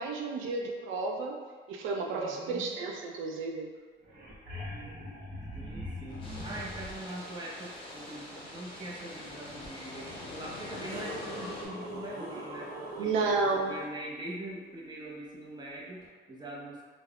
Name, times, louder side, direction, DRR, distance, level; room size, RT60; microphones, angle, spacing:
voice 1, 0.0-1.4 1.7-3.7 13.0-13.7, right 3 dB, 85° right, 1 dB, 0.4 m, -31 dB
voice 2, 2.1-2.7 5.5-12.7 13.0-16.8, right 1 dB, 20° right, -4 dB, 0.6 m, -43 dB
sound 1, 3.7-3.8 4.0-7.1 9.6-9.7 10.4-13.5 16.0-16.1, equal, 50° right, 1.1 m, -42 dB
sound 2, 6.1-13.8, left 3 dB, 85° left, 0.4 m, -48 dB
sound 3, 6.2-11.7, left 1 dB, 25° left, 0.7 m, -47 dB
3.3 x 2.0 x 2.3 m, 1.5 s
cardioid pair, 90°, 20 cm